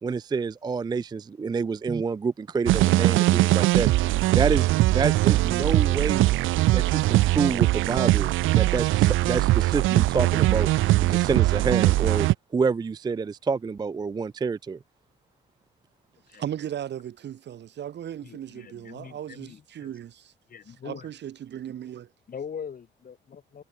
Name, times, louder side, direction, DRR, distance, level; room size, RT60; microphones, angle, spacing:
voice 1, 0.0-3.9 4.3-6.3 6.7-8.3 8.5-10.7 11.0-12.3 12.5-14.8, right 5 dB, 20° right, 0.4 m, -28 dB
sound 1, 2.7-12.3, right 17 dB, 85° right, 0.6 m, -21 dB
voice 2, 16.3-20.3 20.7-22.1, right 10 dB, 65° right, 1.6 m, -37 dB
voice 3, 18.2-19.9 20.5-21.1 22.3-23.6, left 7 dB, 45° left, 2.4 m, -41 dB
cardioid pair, 90°, 20 cm